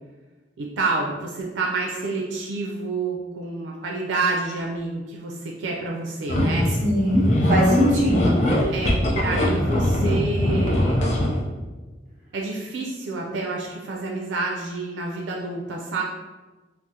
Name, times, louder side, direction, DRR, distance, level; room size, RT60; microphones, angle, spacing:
voice 1, 0.6-6.7 8.7-11.0 12.3-16.0, right 3 dB, 85° right, -1 dB, 0.4 m, -28 dB
sound 1, 6.3-11.4, left 1 dB, 35° left, 0.4 m, -21 dB
voice 2, 6.8-8.7, equal, 45° right, -3 dB, 0.9 m, -21 dB
3.5 x 2.0 x 2.7 m, 1.2 s
head